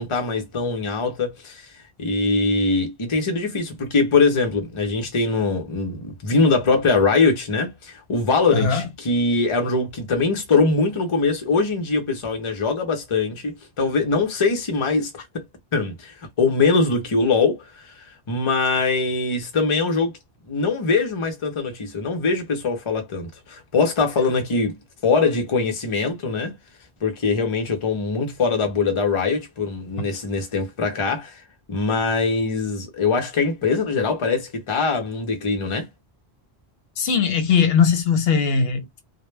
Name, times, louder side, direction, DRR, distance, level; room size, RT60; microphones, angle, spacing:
voice 1, 0.0-1.7 2.0-15.4 15.7-20.2 20.5-24.8 25.0-26.5 27.0-31.4 31.7-35.9, left 4 dB, 35° left, 0.6 m, -22 dB
voice 2, 8.5-8.8 37.0-39.0, left 6 dB, 75° left, 0.8 m, -19 dB
2.1 x 2.1 x 3.1 m
omnidirectional pair, 1.0 m